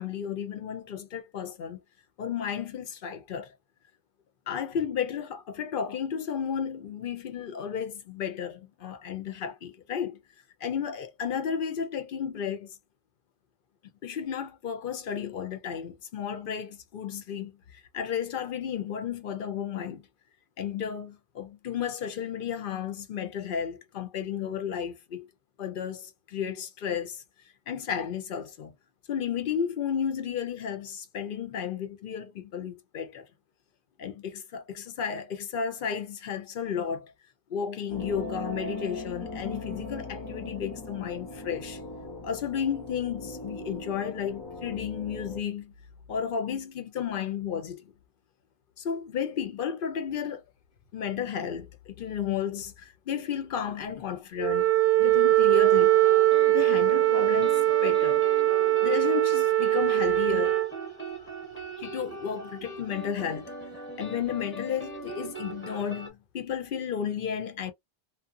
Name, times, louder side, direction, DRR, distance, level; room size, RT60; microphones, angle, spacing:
voice 1, 0.0-1.8 2.2-3.5 4.5-10.2 10.6-12.7 14.0-17.6 17.9-20.0 20.6-25.3 25.6-27.2 27.7-28.7 29.1-33.3 34.0-37.1 37.5-41.8 42.2-45.7 46.1-47.9 48.8-50.4 50.9-54.7 55.0-56.0 56.5-58.2 58.8-60.6 61.8-63.5 64.0-67.7, left 8 dB, 60° left, 0.7 m, -33 dB
sound 1, 37.9-45.4, left 2 dB, 40° left, 0.3 m, -39 dB
Wind instrument woodwind instrument, 54.4-60.7, right 15 dB, 75° right, 0.8 m, -22 dB
sound 2, 55.6-66.1, right 1 dB, 10° left, 0.8 m, -40 dB
2.7 x 2.1 x 2.4 m
omnidirectional pair, 1.1 m